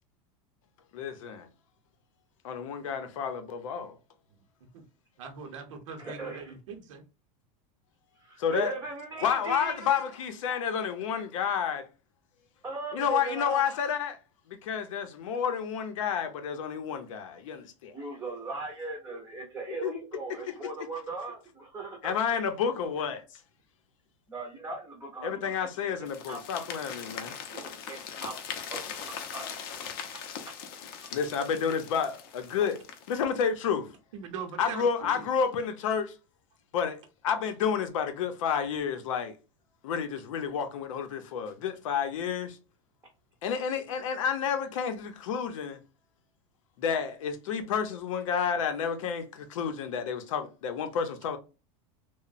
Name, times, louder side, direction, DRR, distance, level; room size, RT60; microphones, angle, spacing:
voice 1, 0.9-1.5 2.4-3.9 8.4-8.7 9.2-11.8 12.9-14.2 14.5-17.9 19.7-20.0 22.0-23.2 25.2-27.4 31.1-32.8 33.1-33.9 34.6-36.1 36.7-37.0 37.2-39.3 39.8-42.6 43.4-45.8 46.8-51.4, left 7 dB, 85° left, 0.6 m, -30 dB
voice 2, 5.2-7.0 34.1-34.8 35.1-35.3, right 6 dB, 75° right, 0.7 m, -41 dB
voice 3, 6.0-6.5 8.2-9.9 12.6-13.6 17.9-22.1 24.3-25.5 26.3-26.4 27.5-28.4 28.7-29.0 29.3-29.5, right 3 dB, 10° right, 0.5 m, -38 dB
sound 1, 26.1-33.2, left 7 dB, 45° left, 0.5 m, -41 dB
3.0 x 2.1 x 2.4 m
supercardioid pair, 170°, 16 cm